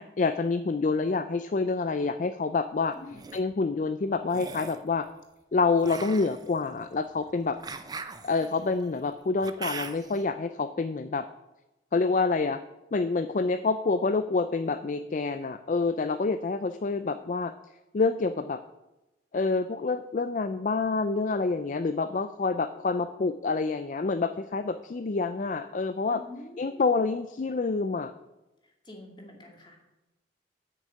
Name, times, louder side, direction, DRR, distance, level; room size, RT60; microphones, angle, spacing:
voice 1, 0.0-3.0 3.3-5.1 5.5-7.6 8.2-11.3 11.9-12.6 12.9-17.5 17.9-18.6 19.3-26.2 26.6-28.1, left 4 dB, 45° left, 11 dB, 0.4 m, -27 dB
sound 1, 2.9-3.4 4.3-4.8 5.8-10.2, right 4 dB, 20° right, 0.5 m, -41 dB
voice 2, 26.1-27.0 28.6-29.8, left 2 dB, 25° left, 1 dB, 2.3 m, -46 dB
8.5 x 6.6 x 8.5 m, 0.98 s
head